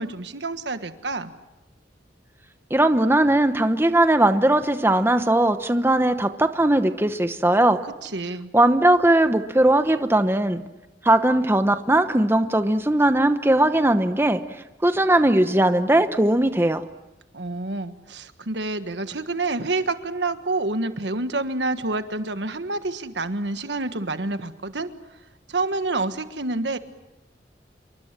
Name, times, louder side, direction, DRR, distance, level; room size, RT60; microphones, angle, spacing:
voice 1, 0.0-1.3 7.8-8.5 17.3-24.9 25.5-26.8, right 2 dB, 80° right, 9 dB, 1.5 m, -28 dB
voice 2, 2.7-7.8 8.5-10.6 11.0-14.4 14.8-16.8, right 1 dB, 15° right, 9 dB, 1.0 m, -19 dB
27.5 x 23.5 x 7.5 m, 0.99 s
head